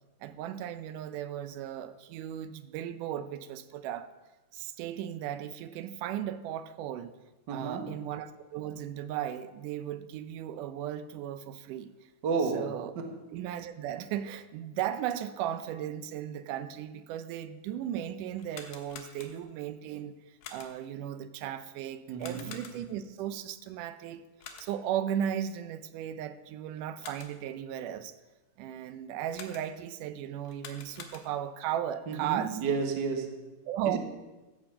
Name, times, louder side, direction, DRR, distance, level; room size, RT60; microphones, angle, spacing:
voice 1, 0.2-4.1 4.5-7.1 7.5-11.9 12.5-12.9 13.3-24.2 24.6-28.1 28.6-32.6 33.7-34.0, right 10 dB, 80° right, 2.1 m, -36 dB
voice 2, 7.5-8.0 12.2-13.2 22.1-22.6 32.1-33.5 33.9-34.0, right 5 dB, 60° right, 1.2 m, -32 dB
sound 1, 18.3-19.6 20.4-21.0 22.2-23.1 24.4-25.0 26.8-27.5 29.3-29.9 30.4-31.6, left 6 dB, 70° left, 2.5 m, -48 dB
14.0 x 7.8 x 5.6 m
omnidirectional pair, 3.7 m